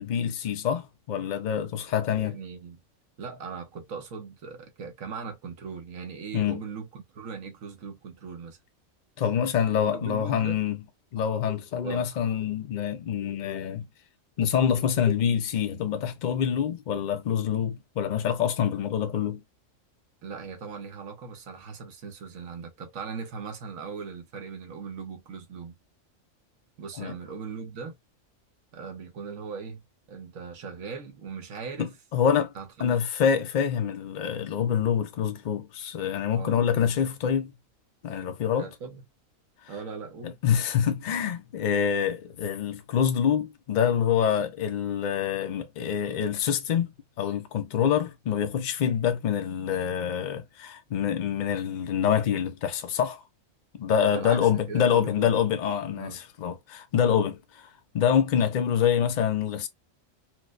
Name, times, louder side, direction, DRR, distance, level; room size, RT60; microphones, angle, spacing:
voice 1, 0.0-2.4 6.3-6.6 9.2-10.8 11.1-13.9 14.4-19.4 27.0-27.2 31.8-32.5 32.8-37.5 38.0-38.7 39.6-39.7 40.2-53.2 53.8-59.7, left 8 dB, 65° left, 0.4 m, -26 dB
voice 2, 2.1-2.8 3.2-8.6 9.9-10.6 11.8-12.1 20.2-25.7 26.8-27.9 28.7-29.8 30.1-31.9 32.5-33.0 36.3-36.9 38.6-39.0 39.7-40.4 54.1-55.3 55.9-56.2, right 5 dB, 80° right, 1.3 m, -39 dB
4.5 x 2.1 x 2.4 m
omnidirectional pair, 1.4 m